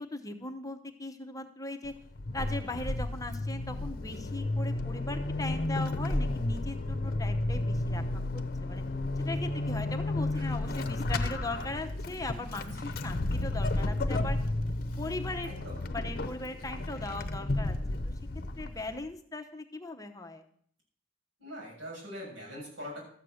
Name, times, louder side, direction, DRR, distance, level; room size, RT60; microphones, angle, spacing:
voice 1, 0.0-1.9 2.3-8.8 9.2-14.4 15.0-15.5 15.9-17.8 18.6-20.4, left 2 dB, 20° left, 6 dB, 0.8 m, -39 dB
Vehicle / Accelerating revving vroom / Squeak, 1.8-19.1, left 2 dB, 50° left, 0.8 m, -32 dB
voice 2, 12.6-12.9 15.4-15.8 21.4-23.0, equal, 90° right, -3 dB, 6.8 m, -43 dB
13.0 x 8.4 x 6.4 m, 0.63 s
head